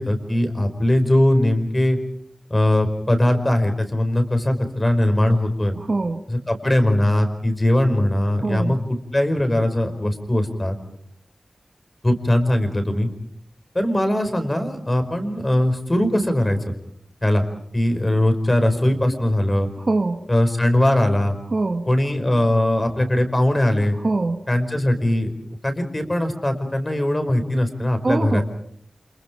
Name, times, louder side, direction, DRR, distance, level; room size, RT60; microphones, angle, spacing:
voice 1, 0.0-2.0 2.5-5.8 6.3-10.8 12.0-13.1 13.7-16.6 17.2-17.4 17.7-19.7 20.3-21.4 21.9-24.0 24.5-25.3 25.6-28.4, left 1 dB, 20° left, 7 dB, 5.1 m, -20 dB
voice 2, 5.8-6.2 8.4-8.7 19.8-20.2 21.5-21.9 24.0-24.4 28.0-28.4, right 3 dB, 45° right, 6 dB, 1.8 m, -23 dB
29.5 x 27.5 x 5.1 m, 0.67 s
wide cardioid pair, 90°, 0 cm